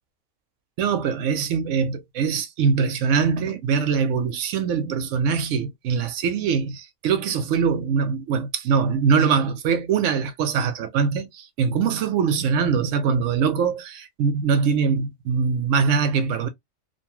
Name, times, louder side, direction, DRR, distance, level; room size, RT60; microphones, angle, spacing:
voice 1, 0.8-16.5, right 6 dB, 85° right, 1.0 m, -22 dB
2.8 x 2.2 x 2.9 m
omnidirectional pair, 1.3 m